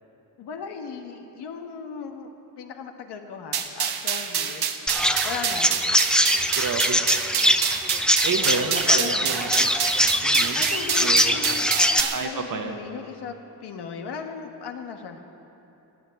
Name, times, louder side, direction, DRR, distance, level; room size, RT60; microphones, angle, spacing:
voice 1, 0.4-2.3 2.6-4.7 5.2-5.7 8.4-9.3 10.5-11.7 12.0-13.3 13.6-15.2, left 6 dB, 85° left, 4 dB, 1.4 m, -37 dB
sound 1, 3.5-12.2, right 8 dB, 70° right, 1.2 m, -27 dB
Chirp tweet, 4.9-12.0, equal, ahead, 0.7 m, -22 dB
voice 2, 6.6-7.1 8.2-9.7 10.2-10.6 11.0-11.4 12.1-12.7, right 4 dB, 55° right, 4 dB, 1.6 m, -29 dB
16.5 x 8.1 x 9.5 m, 3.0 s
cardioid pair, 85°, 39 cm